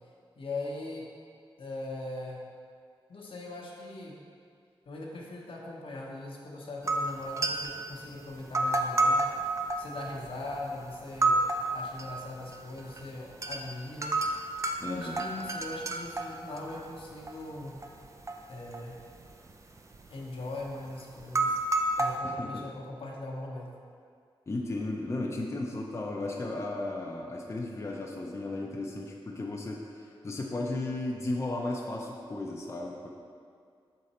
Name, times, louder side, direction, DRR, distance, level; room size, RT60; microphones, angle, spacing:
voice 1, 0.4-1.1 1.6-2.4 3.1-4.2 4.9-9.2 9.8-11.4 11.7-14.1 14.9-17.8 18.5-19.0 20.1-21.6 22.0-23.7, left 2 dB, 75° left, -2 dB, 0.9 m, -40 dB
sound 1, 6.9-7.9 8.4-10.6 11.0-12.1 12.4-13.0 13.3-13.6 14.0-17.3 17.6-18.4 18.7-19.5 19.8-20.1 20.7-20.8 21.2-22.2, right 2 dB, 35° right, 0.4 m, -29 dB
voice 2, 14.8-15.2 22.2-22.6 24.5-33.1, left 2 dB, 30° left, -1 dB, 0.5 m, -35 dB
6.5 x 3.8 x 4.2 m, 2.2 s
wide cardioid pair, 105°, 9 cm